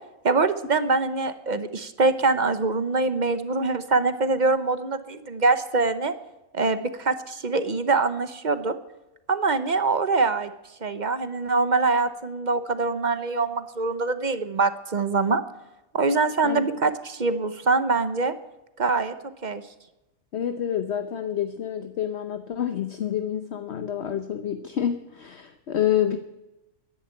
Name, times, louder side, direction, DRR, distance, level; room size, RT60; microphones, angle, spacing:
voice 1, 0.2-6.1 6.5-8.8 9.3-10.5 10.8-15.4 15.9-18.3 18.8-19.1 19.4-19.6, right 3 dB, 40° right, 11 dB, 0.9 m, -24 dB
voice 2, 20.3-26.2, left 10 dB, 55° left, 9 dB, 1.0 m, -28 dB
12.5 x 10.5 x 9.1 m, 0.98 s
omnidirectional pair, 1.5 m